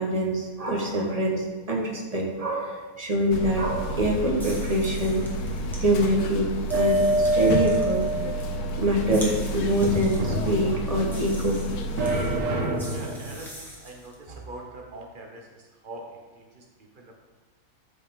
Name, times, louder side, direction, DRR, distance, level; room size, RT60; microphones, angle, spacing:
voice 1, 0.0-5.3 5.8-8.1 8.8-11.6, right 1 dB, 20° right, -1 dB, 1.1 m, -25 dB
sound 1, 3.3-12.4, equal, 65° left, 1.0 m, -31 dB
sound 2, 4.3-14.2, equal, ahead, 1.6 m, -44 dB
sound 3, 6.7-8.7 9.8-11.1 12.0-13.4, right 1 dB, 45° right, 1.4 m, -25 dB
voice 2, 12.9-16.1 16.4-17.1, right 2 dB, 85° right, 1 dB, 0.4 m, -43 dB
13.5 x 5.1 x 3.7 m, 1.3 s
omnidirectional pair, 2.3 m